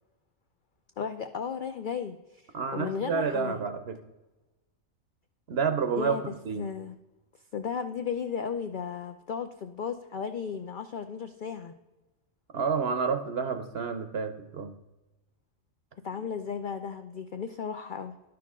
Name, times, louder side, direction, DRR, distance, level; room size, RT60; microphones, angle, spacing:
voice 1, 1.0-2.2 2.7-3.6 6.0-7.0 7.5-11.7 16.0-18.1, left 6 dB, 70° left, 7 dB, 0.4 m, -34 dB
voice 2, 2.5-4.0 5.5-6.2 6.4-6.7 12.5-14.7, right 5 dB, 55° right, 9 dB, 0.8 m, -29 dB
11.5 x 6.1 x 3.6 m, 1.1 s
omnidirectional pair, 1.4 m